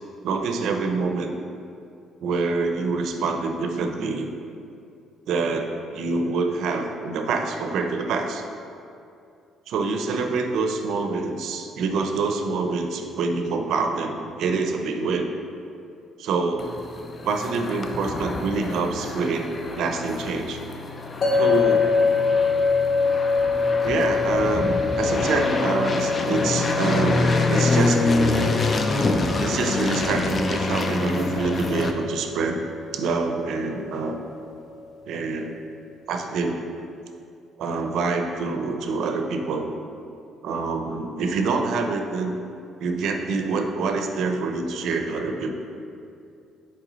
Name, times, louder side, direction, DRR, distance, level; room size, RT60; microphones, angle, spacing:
voice 1, 0.2-1.3 2.2-4.3 5.3-8.5 9.7-15.3 16.2-16.7 17.2-19.5 19.8-20.6 21.3-21.9 23.8-28.6 29.4-32.6 32.9-34.2 35.0-35.6 36.1-36.6 37.6-39.7 40.4-42.4 42.8-45.5, right 4 dB, 65° right, 5 dB, 0.6 m, -26 dB
sound 1, 16.6-31.9, left 3 dB, 30° left, 0.4 m, -26 dB
sound 2, 21.2-34.3, left 4 dB, 45° left, 0.8 m, -26 dB
6.0 x 4.4 x 4.0 m, 2.5 s
cardioid pair, 140°, 0 cm